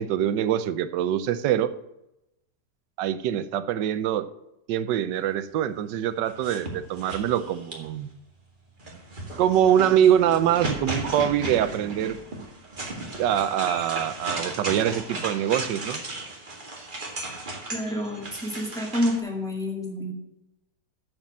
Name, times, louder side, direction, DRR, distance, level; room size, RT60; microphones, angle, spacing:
voice 1, 0.0-1.7 3.0-4.3 4.7-8.1 9.4-12.2 13.2-16.0, right 10 dB, 90° right, 13 dB, 1.3 m, -24 dB
sound 1, 6.3-8.0 8.8-19.2, right 2 dB, 30° right, 1.8 m, -35 dB
voice 2, 17.7-20.1, left 1 dB, ahead, 0 dB, 1.9 m, -28 dB
7.3 x 6.9 x 7.4 m, 0.87 s
omnidirectional pair, 1.9 m